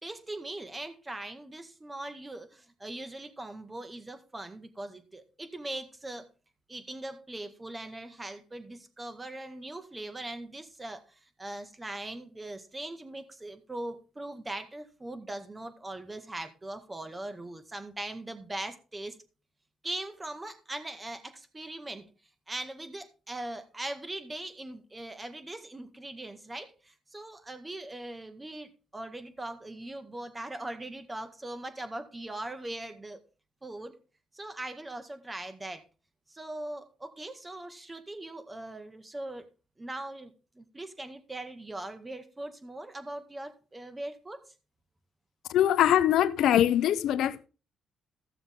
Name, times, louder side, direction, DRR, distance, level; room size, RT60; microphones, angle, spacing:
voice 1, 0.0-6.3 6.7-19.2 19.8-22.0 22.5-33.2 33.6-34.0 34.3-35.8 36.3-39.5 39.8-44.4, right 1 dB, 20° right, 1.8 m, -40 dB
voice 2, 45.5-47.5, left 11 dB, 80° left, 0.7 m, -23 dB
15.0 x 7.0 x 3.7 m
cardioid pair, 90°, 0 cm